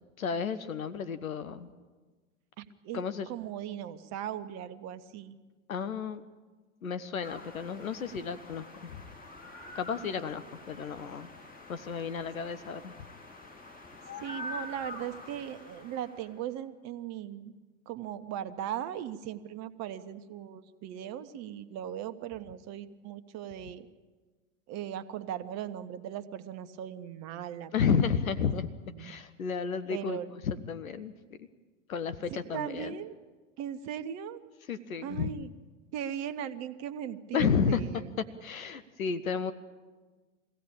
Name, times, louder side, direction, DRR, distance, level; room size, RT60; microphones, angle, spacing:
voice 1, 0.2-1.7 2.9-3.3 5.7-6.2 6.8-8.9 9.7-11.3 11.7-12.9 27.7-30.2 30.5-31.1 31.9-32.9 34.7-35.3 37.3-37.8 38.4-39.5, left 6 dB, 80° left, 13 dB, 1.1 m, -32 dB
voice 2, 2.6-5.4 14.2-17.5 17.9-23.9 24.7-28.0 28.9-29.2 29.9-30.3 32.3-33.1 33.6-34.4 35.0-35.5 35.9-38.1, right 10 dB, 40° right, 11 dB, 1.3 m, -38 dB
sound 1, 7.2-16.4, left 2 dB, 20° left, 4.2 m, -46 dB
22.5 x 16.0 x 8.8 m, 1.3 s
figure-of-eight pair, 90°, 41 cm